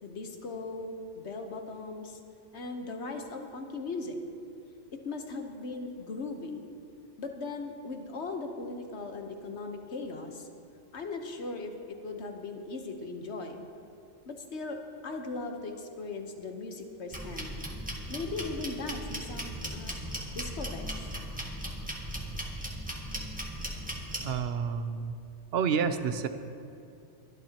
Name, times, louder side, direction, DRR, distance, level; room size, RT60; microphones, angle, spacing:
voice 1, 0.0-2.2 2.5-4.2 4.9-6.6 7.2-10.5 10.9-13.6 14.3-17.6 18.1-20.0 20.3-20.9, left 3 dB, 70° left, 4 dB, 1.4 m, -38 dB
sound 1, 17.1-24.3, equal, 5° right, 1.5 m, -37 dB
voice 2, 24.2-25.1 25.5-26.3, right 6 dB, 65° right, 10 dB, 0.9 m, -29 dB
22.5 x 12.0 x 2.9 m, 2.6 s
omnidirectional pair, 1.2 m